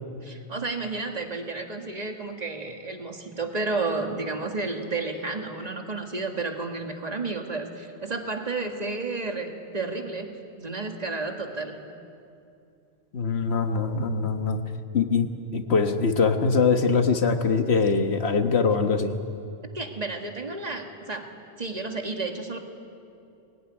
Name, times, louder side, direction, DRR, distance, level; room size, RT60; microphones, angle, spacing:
voice 1, 0.2-11.8 19.7-21.3 21.6-22.6, right 3 dB, 40° right, 4 dB, 1.9 m, -31 dB
voice 2, 13.1-14.6 14.9-19.1, left 4 dB, 90° left, 6 dB, 1.5 m, -23 dB
21.0 x 17.5 x 9.8 m, 2.6 s
omnidirectional pair, 1.1 m